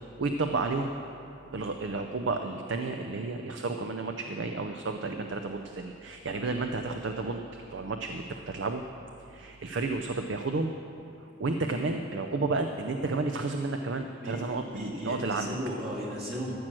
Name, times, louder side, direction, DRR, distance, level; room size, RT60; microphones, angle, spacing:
voice 1, 0.2-0.9 1.5-8.8 9.3-10.7 11.4-15.6, right 3 dB, 70° right, 6 dB, 0.5 m, -32 dB
voice 2, 14.2-16.5, equal, 50° right, -4 dB, 2.6 m, -36 dB
13.5 x 6.2 x 7.6 m, 2.7 s
head